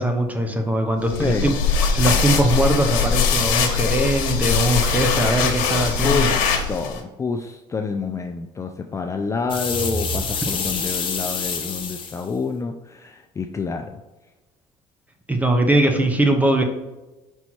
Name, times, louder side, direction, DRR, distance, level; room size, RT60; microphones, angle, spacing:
voice 1, 0.0-1.5 1.9-6.3 15.3-16.6, right 1 dB, 10° right, 4 dB, 1.0 m, -20 dB
sound 1, 1.1-7.0, left 6 dB, 85° left, 1.3 m, -21 dB
voice 2, 1.1-1.5 6.0-6.4 6.7-14.0, left 4 dB, 20° left, 5 dB, 0.4 m, -28 dB
sound 2, 9.3-11.3, right 3 dB, 35° right, 0.7 m, -33 dB
sound 3, 9.5-12.2, left 6 dB, 35° left, 1.3 m, -28 dB
5.3 x 4.6 x 4.3 m, 1.1 s
cardioid pair, 120°, 14 cm